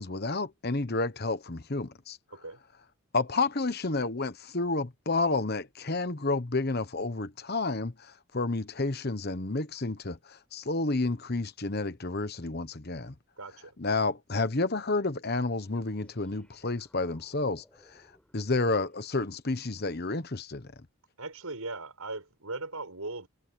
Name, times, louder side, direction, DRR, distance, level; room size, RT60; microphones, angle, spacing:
voice 1, 0.0-2.2 3.1-13.1 13.8-18.0 18.3-20.7, left 3 dB, 45° left, 1.1 m, -30 dB
voice 2, 2.3-2.6 13.4-13.8 18.5-18.8 21.2-23.3, right 3 dB, 80° right, 6.1 m, -39 dB
sound 1, 15.5-19.5, equal, 5° left, 7.4 m, -65 dB
head